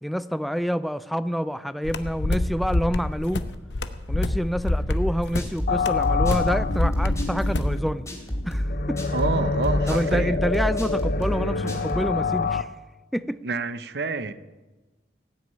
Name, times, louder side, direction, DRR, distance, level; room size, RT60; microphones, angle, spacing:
voice 1, 0.0-3.4 4.1-8.1 8.5-9.0 9.9-12.7 13.1-13.4, equal, ahead, 0.4 m, -27 dB
sound 1, 1.8-7.8, left 2 dB, 85° left, 0.8 m, -27 dB
sound 2, 4.9-12.1, equal, 20° left, 2.6 m, -28 dB
sound 3, 5.7-12.6, left 4 dB, 55° left, 0.5 m, -27 dB
voice 2, 9.1-10.4 13.4-14.3, right 4 dB, 70° right, 0.7 m, -28 dB
17.5 x 6.3 x 8.7 m
head